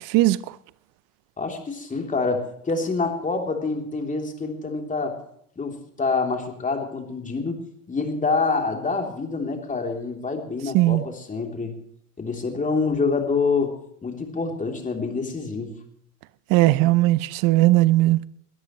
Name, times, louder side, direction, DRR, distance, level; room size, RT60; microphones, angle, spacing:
voice 1, 1.4-5.2 5.6-11.8 12.2-13.8 14.0-15.8, left 4 dB, 15° left, 3.3 m, -26 dB
voice 2, 16.5-18.2, right 17 dB, 45° right, 0.7 m, -18 dB
22.0 x 13.5 x 3.1 m
hypercardioid pair, 100°, 47 cm